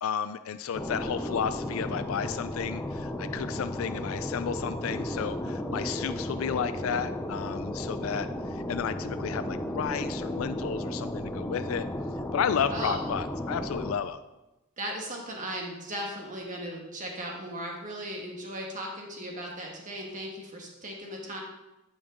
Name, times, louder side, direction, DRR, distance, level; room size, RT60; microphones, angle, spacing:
voice 1, 0.0-11.9 12.3-14.2, left 7 dB, 75° left, 12 dB, 0.4 m, -32 dB
sound 1, 0.7-13.9, left 1 dB, 10° left, 0.5 m, -34 dB
voice 2, 14.8-21.4, right 1 dB, 40° right, 0 dB, 1.5 m, -37 dB
13.5 x 5.4 x 3.8 m, 1.0 s
head